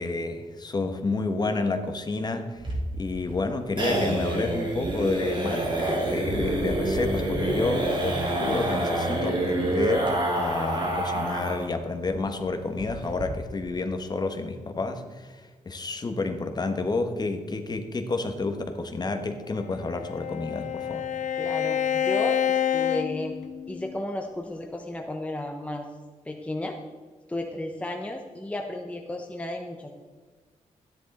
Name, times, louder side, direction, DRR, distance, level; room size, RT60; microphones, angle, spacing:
voice 1, 0.0-2.6 2.9-21.1, left 3 dB, 30° left, 6 dB, 1.1 m, -30 dB
sound 1, 2.6-11.7 12.0-12.1 12.4-12.5 12.8-13.2, right 1 dB, 40° right, 3.0 m, -27 dB
Bowed string instrument, 19.5-24.0, left 9 dB, 70° left, 0.7 m, -28 dB
voice 2, 21.4-23.4 23.7-25.9 26.2-26.8 27.3-29.9, left 1 dB, 10° left, 3 dB, 0.8 m, -33 dB
12.5 x 10.0 x 4.2 m, 1.4 s
wide cardioid pair, 140°, 13 cm